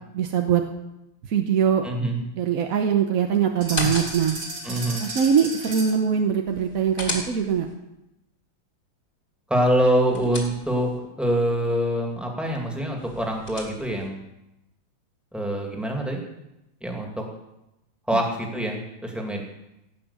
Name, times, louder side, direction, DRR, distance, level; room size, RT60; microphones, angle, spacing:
voice 1, 0.1-0.6 1.3-1.9 2.4-4.4 5.0-7.7 18.1-18.2, right 7 dB, 55° right, 4 dB, 1.1 m, -22 dB
voice 2, 1.8-2.2 4.6-5.0 9.5-10.9 11.2-14.2 15.3-16.2 16.8-17.2 18.1-19.4, right 1 dB, ahead, 0 dB, 2.2 m, -25 dB
sound 1, 3.6-4.5 6.5-7.7 9.7-11.0 13.0-14.1, left 2 dB, 25° left, 2.5 m, -34 dB
sound 2, 3.6-6.1, right 2 dB, 75° right, 3.9 m, -34 dB
17.5 x 5.9 x 8.4 m, 0.90 s
omnidirectional pair, 2.2 m